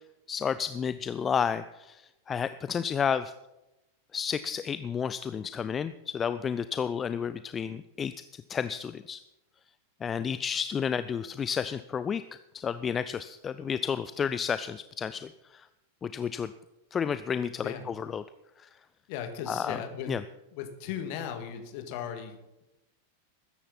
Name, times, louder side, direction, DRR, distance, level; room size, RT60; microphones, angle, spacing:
voice 1, 0.3-2.0 2.3-3.3 4.1-9.2 10.0-12.2 12.5-15.7 16.0-16.5 16.9-18.2 18.6-18.7 19.5-19.8 20.1-20.2, left 7 dB, 20° left, 13 dB, 0.4 m, -31 dB
voice 2, 19.1-20.1 20.5-22.6, left 8 dB, 45° left, 6 dB, 2.2 m, -37 dB
20.5 x 10.0 x 4.2 m, 0.97 s
figure-of-eight pair, 90°, 0 cm